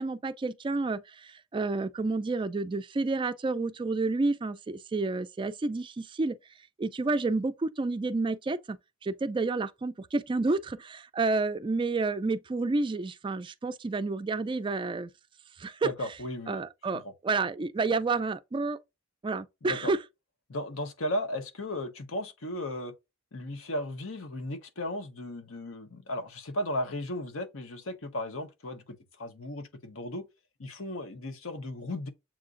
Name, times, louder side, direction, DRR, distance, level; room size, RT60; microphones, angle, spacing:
voice 1, 0.0-6.4 6.8-15.1 15.6-15.9 16.5-18.8 19.2-20.0, right 3 dB, 25° right, 0.3 m, -30 dB
voice 2, 15.8-16.6 16.9-17.1 19.6-19.9 20.5-22.9 23.3-30.3 30.6-32.1, left 1 dB, 80° left, 0.9 m, -35 dB
7.3 x 2.5 x 2.5 m
head